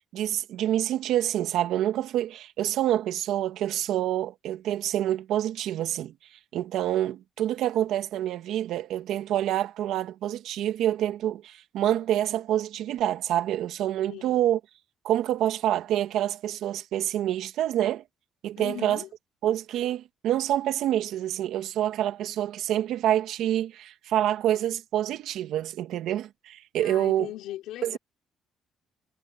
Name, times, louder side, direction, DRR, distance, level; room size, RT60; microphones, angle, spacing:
voice 1, 0.0-6.1 6.5-14.6 15.0-18.0 18.4-19.0 19.4-27.3 27.8-28.0, right 12 dB, 75° right, 2.1 m, -27 dB
voice 2, 14.1-14.4 18.6-19.1 26.8-28.0, left 14 dB, 80° left, 3.9 m, -39 dB
cardioid pair, 85°, 0 cm